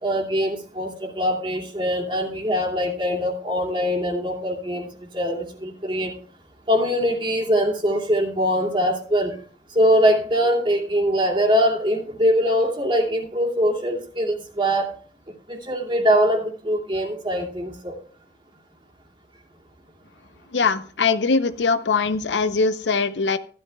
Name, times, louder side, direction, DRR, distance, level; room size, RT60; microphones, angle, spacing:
voice 1, 0.0-6.1 6.7-9.4 9.7-14.9 15.5-18.0, equal, 30° right, -1 dB, 2.7 m, -22 dB
voice 2, 20.5-23.4, left 4 dB, 80° left, 12 dB, 0.7 m, -21 dB
15.5 x 12.0 x 2.3 m, 0.42 s
head